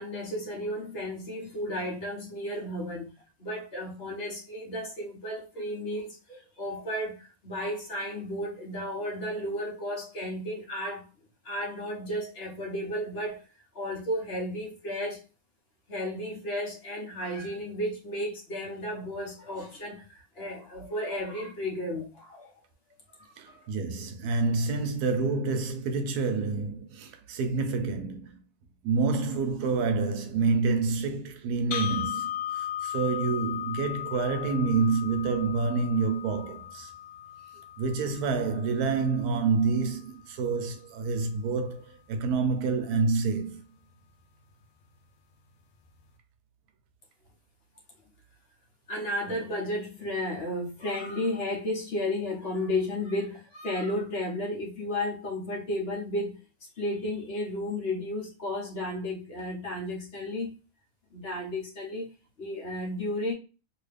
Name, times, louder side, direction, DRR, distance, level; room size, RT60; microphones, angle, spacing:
voice 1, 0.0-3.1 3.4-11.1 11.4-13.4 13.7-15.2 15.9-22.5 23.3-23.6 48.9-56.4 56.8-60.5 61.1-62.1 62.4-63.3, left 1 dB, 45° left, 1.2 m, -33 dB
voice 2, 23.4-28.4 28.8-36.9 37.8-43.6, right 4 dB, 85° right, 1.2 m, -28 dB
sound 1, 31.7-39.7, left 10 dB, 70° left, 0.9 m, -37 dB
2.9 x 2.8 x 3.3 m
omnidirectional pair, 1.6 m